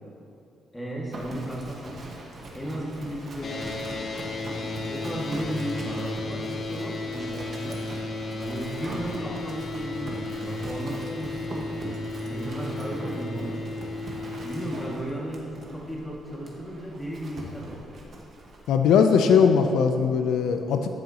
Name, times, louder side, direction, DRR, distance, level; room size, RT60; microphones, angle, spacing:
voice 1, 0.7-2.1 2.5-3.9 4.9-7.8 8.4-11.9 12.2-13.6 14.4-17.8, equal, 10° left, -4 dB, 2.0 m, -35 dB
Livestock farm animals working animals, 1.1-18.7, right 1 dB, 50° right, 1.4 m, -41 dB
sound 1, 3.4-14.9, left 2 dB, 45° left, 0.9 m, -34 dB
voice 2, 18.7-20.9, left 6 dB, 85° left, 6 dB, 0.4 m, -20 dB
12.5 x 6.6 x 2.9 m, 2.6 s
cardioid pair, 90°, 0 cm